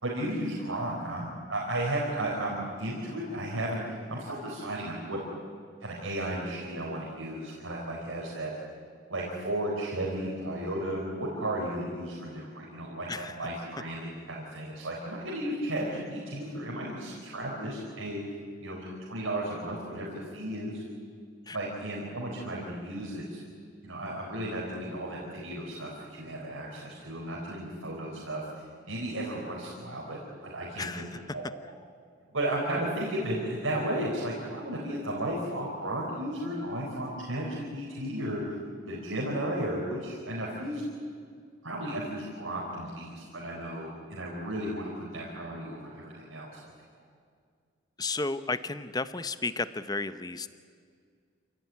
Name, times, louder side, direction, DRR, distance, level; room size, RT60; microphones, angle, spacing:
voice 1, 0.0-5.2 5.8-8.5 9.1-18.2 18.6-20.8 21.5-23.4 23.8-31.0 31.3-31.4 32.3-38.4 38.9-40.8 41.6-46.7, right 1 dB, 85° right, -3 dB, 4.4 m, -34 dB
voice 2, 48.0-50.5, left 3 dB, 20° left, 13 dB, 0.7 m, -33 dB
27.5 x 17.0 x 9.5 m, 2.1 s
head